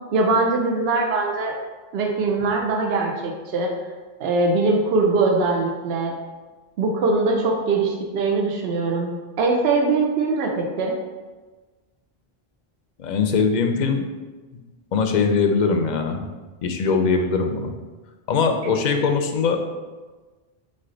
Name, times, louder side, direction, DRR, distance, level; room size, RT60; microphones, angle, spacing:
voice 1, 0.1-1.6 1.9-3.7 4.2-6.1 6.8-9.1 9.4-10.9, right 3 dB, 80° right, 1 dB, 0.8 m, -21 dB
voice 2, 13.0-14.0 14.9-16.3 16.6-17.7 18.3-19.6, left 5 dB, 55° left, 5 dB, 0.5 m, -21 dB
3.8 x 3.3 x 3.8 m, 1.3 s
omnidirectional pair, 1.0 m